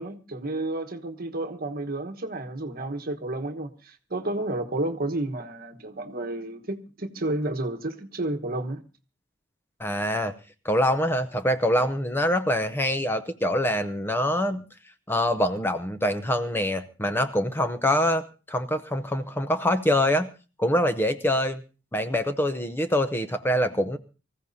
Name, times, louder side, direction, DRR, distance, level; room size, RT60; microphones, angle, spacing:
voice 1, 0.0-8.8, right 2 dB, 50° right, 1.3 m, -31 dB
voice 2, 9.8-10.3 10.6-14.6 15.1-20.3 20.6-21.6 21.9-24.0, left 1 dB, 10° left, 0.7 m, -25 dB
25.0 x 15.0 x 2.7 m
head